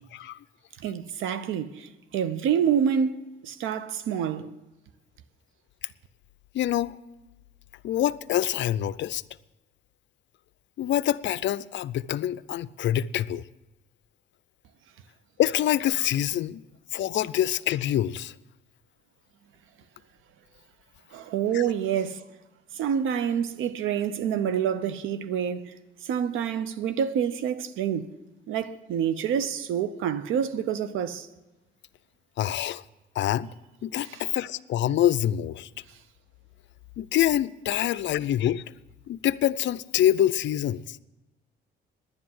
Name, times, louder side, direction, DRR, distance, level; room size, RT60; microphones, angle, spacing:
voice 1, 0.8-4.6 21.1-22.2 22.7-25.7 26.0-28.2 28.5-31.3 34.1-34.2, right 8 dB, 85° right, 0.8 m, -27 dB
voice 2, 6.5-7.0 7.8-9.2 10.8-13.4 15.4-16.6 16.9-18.3 21.5-21.6 32.4-32.8 33.2-33.5 33.8-35.7 37.0-38.6 39.1-41.0, left 12 dB, 65° left, 0.5 m, -26 dB
10.5 x 9.8 x 7.8 m
cardioid pair, 90°, 20 cm